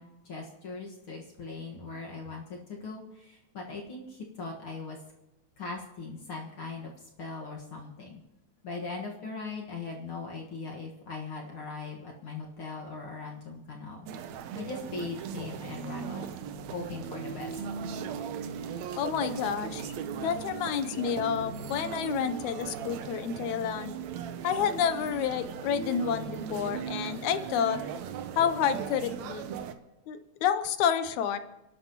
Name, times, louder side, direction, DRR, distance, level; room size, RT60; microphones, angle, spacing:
voice 1, 0.0-5.0 5.6-6.9 7.2-8.2 8.6-14.1 14.6-16.3 16.7-17.6, left 4 dB, 50° left, -1 dB, 2.2 m, -40 dB
sound 1, 14.1-29.7, right 7 dB, 75° right, 2.0 m, -38 dB
voice 2, 19.0-19.9 20.2-23.9 24.4-27.8 28.4-29.5 30.1-31.4, left 8 dB, 85° left, 11 dB, 2.2 m, -29 dB
30.0 x 11.5 x 3.0 m, 0.96 s
omnidirectional pair, 3.3 m